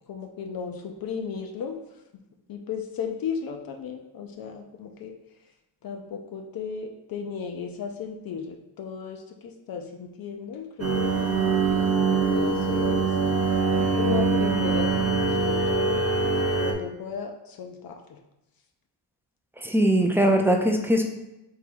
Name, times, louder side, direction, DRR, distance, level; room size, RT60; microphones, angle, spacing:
voice 1, 0.1-1.8 2.5-5.2 5.8-13.1 14.0-16.1 16.3-18.2, left 6 dB, 55° left, 3 dB, 0.5 m, -35 dB
sound 1, 10.8-16.7, right 4 dB, 35° right, 0.8 m, -23 dB
voice 2, 19.6-21.0, right 1 dB, 5° right, 2 dB, 0.4 m, -21 dB
3.8 x 3.1 x 4.5 m, 0.93 s
wide cardioid pair, 140°, 41 cm